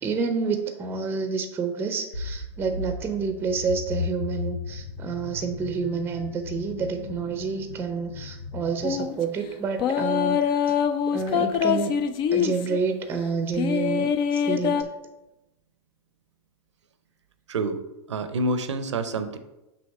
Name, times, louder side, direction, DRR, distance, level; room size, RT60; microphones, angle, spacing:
voice 1, 0.0-10.5 11.1-12.0 12.3-14.9, right 5 dB, 15° right, 7 dB, 0.6 m, -29 dB
sound 1, 2.1-9.0, left 4 dB, 85° left, 1.7 m, -36 dB
sound 2, 8.8-9.1 9.8-12.8 13.5-14.8, left 8 dB, 30° left, 0.4 m, -24 dB
voice 2, 17.5-17.8 18.1-19.4, right 2 dB, 80° right, 10 dB, 0.6 m, -27 dB
6.3 x 2.8 x 5.4 m, 0.97 s
hypercardioid pair, 115°, 15 cm